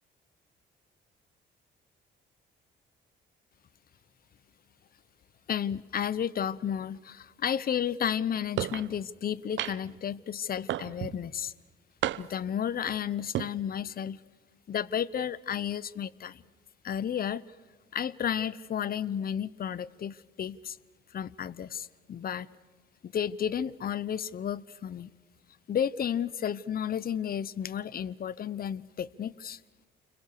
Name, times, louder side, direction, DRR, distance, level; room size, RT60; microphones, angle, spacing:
voice 1, 5.5-11.5 12.2-14.2 14.7-16.4 16.8-17.4 17.9-20.8 21.1-22.5 23.0-25.1 25.7-29.6, left 9 dB, 50° left, 0.8 m, -32 dB
sound 1, 8.6-8.9 9.6-10.0 10.7-11.2 12.0-12.5 13.2-13.5, right 13 dB, 70° right, 0.7 m, -32 dB
29.5 x 22.0 x 6.8 m
cardioid pair, 90°, 20 cm